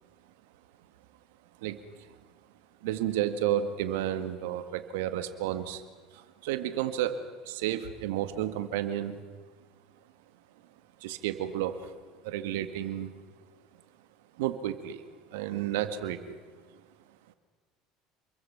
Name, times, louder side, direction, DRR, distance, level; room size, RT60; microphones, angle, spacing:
voice 1, 1.6-2.1 2.8-5.8 6.1-9.2 11.0-11.9 12.2-13.1 14.4-15.0 15.3-16.4, right 11 dB, 75° right, 10 dB, 1.9 m, -32 dB
28.0 x 22.5 x 5.9 m, 1.5 s
hypercardioid pair, 70°, 0 cm